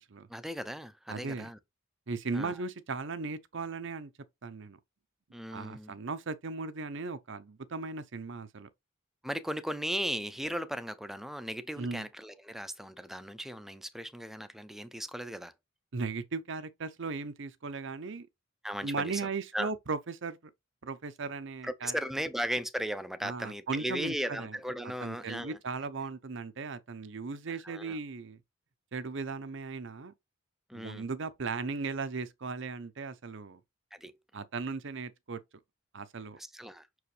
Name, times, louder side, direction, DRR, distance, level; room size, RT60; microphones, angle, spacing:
voice 1, 0.3-1.6 2.3-2.5 5.3-6.0 9.2-15.5 18.6-19.2 19.5-19.7 21.6-25.6 27.5-28.0 30.7-31.0 33.9-34.1 36.4-36.9, equal, ahead, 0.6 m, -37 dB
voice 2, 1.1-1.5 2.1-4.1 4.4-4.8 5.5-8.7 11.8-12.1 15.9-18.3 18.8-20.5 20.8-22.0 23.2-24.6 25.0-28.4 28.9-30.1 30.7-33.6 34.3-35.4 35.9-36.4, right 4 dB, 65° right, 0.7 m, -37 dB
6.2 x 4.7 x 3.2 m
head